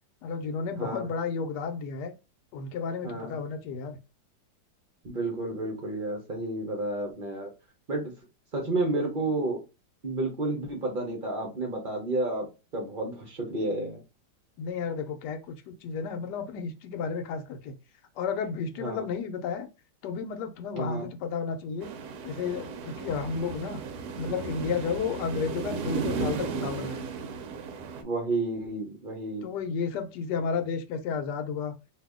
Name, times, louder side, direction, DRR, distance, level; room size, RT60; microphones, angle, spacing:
voice 1, 0.2-2.1 2.5-4.0 14.6-17.7 18.2-19.7 20.0-21.9 22.2-23.8 24.2-27.1 29.4-31.7, left 5 dB, 70° left, 1.2 m, -32 dB
voice 2, 0.8-1.1 3.0-3.3 5.0-7.5 7.9-8.1 8.5-9.6 10.0-12.5 12.7-14.0 18.8-19.1 20.8-21.1 28.0-29.5, right 2 dB, 45° right, 0.7 m, -31 dB
sound 1, 21.8-28.0, right 5 dB, 70° right, 1.0 m, -35 dB
2.7 x 2.6 x 3.5 m
omnidirectional pair, 1.9 m